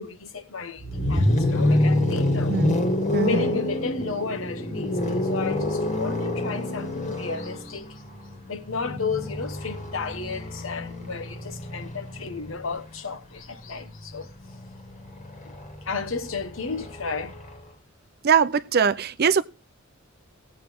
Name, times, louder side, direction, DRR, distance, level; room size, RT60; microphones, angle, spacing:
voice 1, 0.0-2.5 3.3-8.0 8.5-14.3 15.4-15.5 15.8-17.4, left 4 dB, 75° left, 1.2 m, -33 dB
sound 1, 0.8-12.7 14.0-17.6, left 1 dB, 40° left, 1.8 m, -27 dB
voice 2, 2.5-2.8 3.1-3.6 18.2-19.4, right 6 dB, 50° right, 0.5 m, -22 dB
18.0 x 8.1 x 3.6 m
head